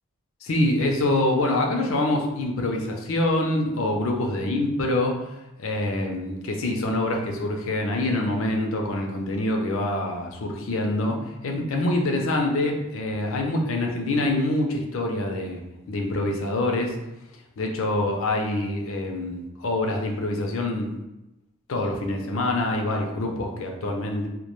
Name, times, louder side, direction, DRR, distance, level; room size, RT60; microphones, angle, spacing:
voice 1, 0.4-5.2 5.6-15.6 15.9-17.0 17.6-20.9 21.7-24.3, left 1 dB, 70° left, 1 dB, 0.5 m, -25 dB
2.2 x 2.1 x 3.0 m, 0.96 s
head